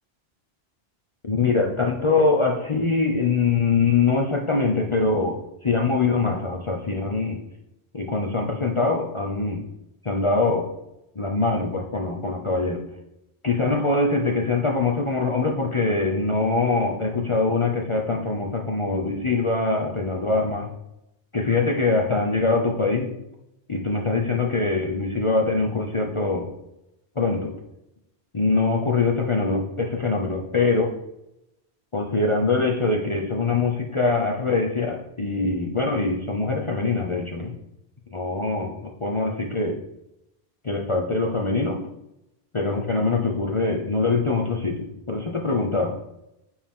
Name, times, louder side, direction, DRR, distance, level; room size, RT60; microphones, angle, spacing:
voice 1, 1.2-7.4 7.9-9.6 10.0-10.7 11.2-12.8 13.4-20.7 21.3-23.1 23.7-26.5 27.2-27.5 28.3-31.0 31.9-37.5 38.1-39.8 40.6-41.8 42.5-46.0, left 3 dB, 30° left, 1 dB, 0.7 m, -23 dB
8.9 x 4.5 x 3.7 m, 0.86 s
omnidirectional pair, 1.1 m